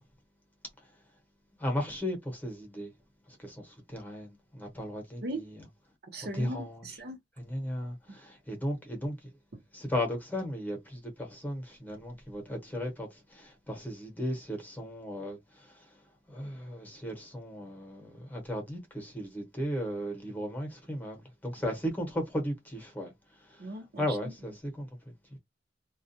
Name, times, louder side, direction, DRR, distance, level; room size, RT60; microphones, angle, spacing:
voice 1, 1.6-2.9 3.3-5.2 6.3-6.8 7.4-9.2 9.7-15.7 16.3-23.1 24.0-25.4, equal, 10° left, 0.9 m, -36 dB
voice 2, 6.1-7.2 23.6-24.3, right 1 dB, 60° right, 0.7 m, -38 dB
2.3 x 2.2 x 2.7 m
head